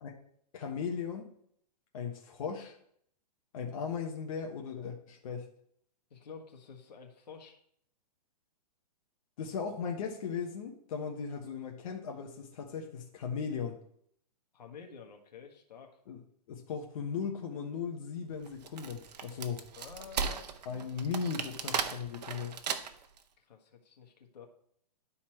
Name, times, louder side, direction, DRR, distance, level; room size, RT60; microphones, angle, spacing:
voice 1, 0.5-1.2 1.9-2.7 3.5-5.5 9.4-13.8 16.1-16.2 16.5-19.6 20.6-22.6, left 6 dB, 55° left, 1 dB, 1.2 m, -37 dB
voice 2, 6.1-7.6 14.5-16.0 19.7-20.6 23.4-24.5, left 6 dB, 85° left, 2 dB, 1.5 m, -50 dB
Wood, 18.4-23.2, right 6 dB, 80° right, 0.9 m, -36 dB
11.0 x 4.3 x 4.4 m, 0.67 s
hypercardioid pair, 155°, 21 cm